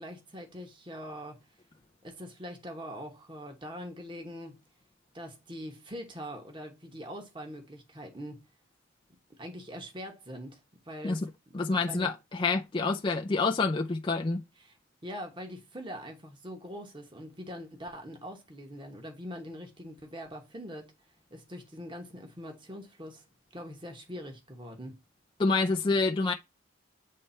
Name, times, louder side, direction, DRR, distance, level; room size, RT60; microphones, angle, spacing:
voice 1, 0.0-1.4 2.0-4.6 5.1-8.4 9.4-10.6 10.8-11.3 11.8-12.1 14.6-14.8 15.0-20.9 21.3-23.2 23.5-25.0, equal, 20° right, 1.1 m, -43 dB
voice 2, 11.5-14.4 25.4-26.3, left 3 dB, 25° left, 0.4 m, -27 dB
8.5 x 3.3 x 4.3 m
head